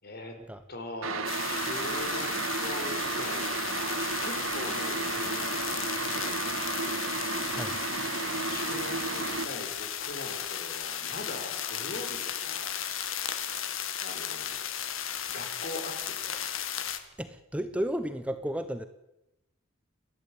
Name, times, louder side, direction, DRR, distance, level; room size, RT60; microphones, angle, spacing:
voice 1, 0.0-0.4 0.7-2.3 2.6-6.4 8.1-12.8 14.0-14.7 15.3-16.5, left 2 dB, 50° left, 5 dB, 5.0 m, -42 dB
sound 1, 1.0-9.5, right 4 dB, 85° right, 2.1 m, -33 dB
sound 2, 1.2-17.0, left 9 dB, 75° left, 2.0 m, -35 dB
voice 2, 17.2-18.9, equal, 5° right, 10 dB, 1.0 m, -33 dB
29.0 x 12.0 x 8.8 m, 0.91 s
head